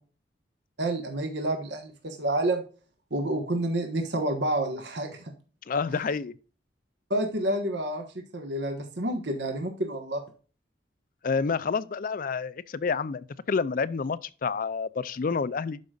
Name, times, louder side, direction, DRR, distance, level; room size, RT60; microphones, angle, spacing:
voice 1, 0.8-2.6 3.1-5.3 7.1-10.2, right 1 dB, 70° right, 1.4 m, -29 dB
voice 2, 5.7-6.3 11.2-15.8, left 5 dB, 50° left, 0.4 m, -29 dB
12.0 x 5.1 x 2.4 m
head